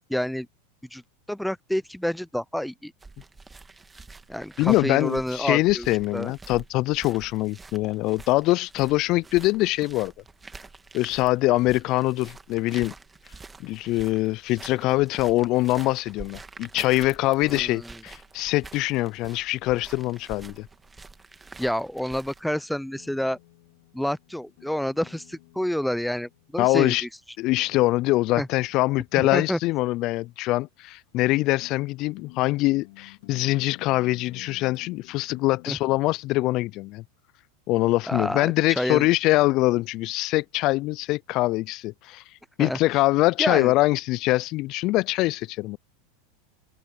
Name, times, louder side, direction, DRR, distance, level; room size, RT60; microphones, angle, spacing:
voice 1, 0.1-0.5 0.9-1.0 1.3-2.9 4.3-6.3 17.5-18.0 21.6-23.4 23.9-27.1 28.4-28.5 29.2-29.6 35.7-35.8 38.1-39.1 42.6-42.8 43.4-43.7, equal, ahead, 0.7 m, -28 dB
sound 1, 3.0-22.4, right 3 dB, 15° right, 1.7 m, -47 dB
voice 2, 4.6-10.1 10.9-12.9 13.6-20.7 26.6-27.1 27.4-37.0 37.7-42.2 42.6-45.8, left 19 dB, 50° left, 0.4 m, -23 dB
sound 2, 22.9-26.7 27.5-30.3 31.1-31.2 31.6-36.0, left 23 dB, 65° left, 2.3 m, -52 dB
hypercardioid pair, 100°, 0 cm